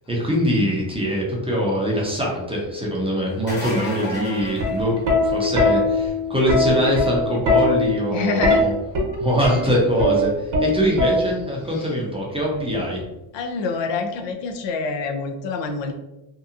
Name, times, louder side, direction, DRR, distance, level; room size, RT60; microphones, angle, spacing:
voice 1, 0.1-5.0 5.2-8.7 9.2-13.0, equal, 10° right, -3 dB, 0.6 m, -23 dB
sound 1, 3.3-5.5 11.1-11.2 13.0-13.1, left 1 dB, 20° left, 1.0 m, -32 dB
Plucked string instrument, 4.6-11.6 12.7-13.0, left 2 dB, 60° right, 0.9 m, -21 dB
voice 2, 8.1-8.8 11.7-11.9 13.3-15.9, left 4 dB, 65° left, 4 dB, 0.5 m, -26 dB
2.8 x 2.2 x 2.4 m, 0.96 s
cardioid pair, 115°, 48 cm